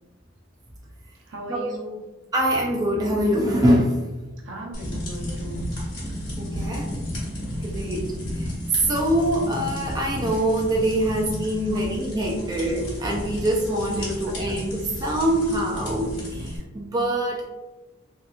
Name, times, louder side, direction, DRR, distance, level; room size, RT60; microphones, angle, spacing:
voice 1, 1.2-2.0 4.4-5.7 11.7-11.8 14.0-14.5, equal, 70° right, -1 dB, 0.6 m, -38 dB
voice 2, 2.3-4.1 6.4-6.9 7.6-8.1 8.3-8.5 8.9-17.4, right 1 dB, 20° right, -2 dB, 0.3 m, -24 dB
sound 1, 4.7-16.6, equal, 60° left, 1.3 m, -32 dB
2.8 x 2.3 x 2.3 m, 1.1 s
head